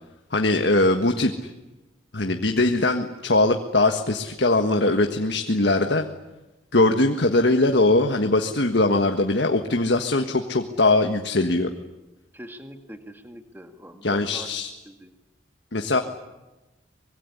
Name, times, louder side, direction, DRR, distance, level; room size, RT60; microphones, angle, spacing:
voice 1, 0.3-1.5 2.1-6.1 6.7-11.7 14.0-14.7 15.7-16.0, left 2 dB, 65° left, 5 dB, 1.5 m, -21 dB
voice 2, 12.3-14.6 14.9-15.1, equal, 10° right, 6 dB, 2.2 m, -42 dB
25.0 x 22.5 x 9.9 m, 1.1 s
head